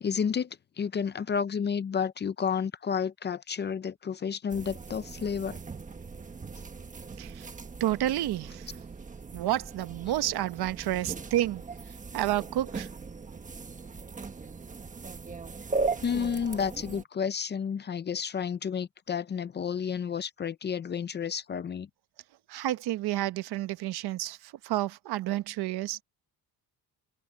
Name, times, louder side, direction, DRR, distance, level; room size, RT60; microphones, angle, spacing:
voice 1, 0.0-5.6 16.0-21.9, left 7 dB, 30° left, 0.5 m, -31 dB
sound 1, 4.5-17.0, right 4 dB, 20° right, 1.3 m, -38 dB
voice 2, 7.8-8.7 9.3-11.6 12.1-12.9 22.5-26.0, right 14 dB, 85° right, 1.0 m, -30 dB
cardioid pair, 175°, 38 cm